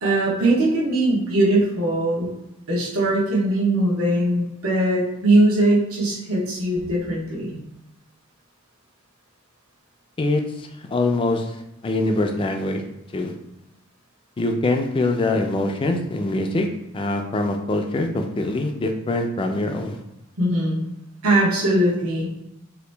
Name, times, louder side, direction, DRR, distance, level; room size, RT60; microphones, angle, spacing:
voice 1, 0.0-2.3 2.7-7.6 20.4-20.8 21.2-22.3, right 1 dB, 75° right, -6 dB, 1.1 m, -20 dB
voice 2, 10.2-11.6 11.8-12.8 13.1-13.3 14.4-16.7 16.9-20.0, left 2 dB, 25° left, 4 dB, 0.3 m, -23 dB
2.9 x 2.6 x 3.2 m, 0.89 s
head